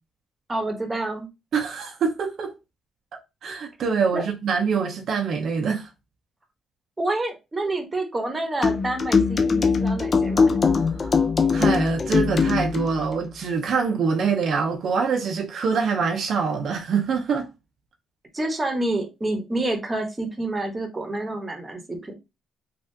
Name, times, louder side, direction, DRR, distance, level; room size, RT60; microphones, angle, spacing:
voice 1, 0.5-1.3 4.1-4.2 7.0-10.5 18.3-22.1, right 2 dB, 20° right, 0.9 m, -28 dB
voice 2, 1.5-2.5 3.4-5.9 10.7-11.1 11.5-17.5, right 5 dB, 65° right, 0.5 m, -25 dB
sound 1, 8.6-12.9, left 5 dB, 40° left, 0.5 m, -21 dB
3.4 x 2.4 x 2.7 m
cardioid pair, 90°, 0 cm